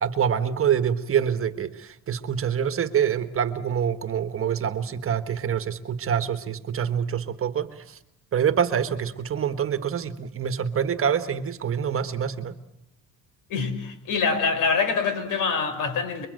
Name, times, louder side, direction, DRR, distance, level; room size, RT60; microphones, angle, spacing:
voice 1, 0.0-8.0 8.3-12.6, right 8 dB, 40° right, 11 dB, 1.5 m, -26 dB
voice 2, 13.5-16.3, left 5 dB, 70° left, 9 dB, 5.4 m, -25 dB
29.0 x 23.0 x 7.9 m, 0.80 s
cardioid pair, 130°, 33 cm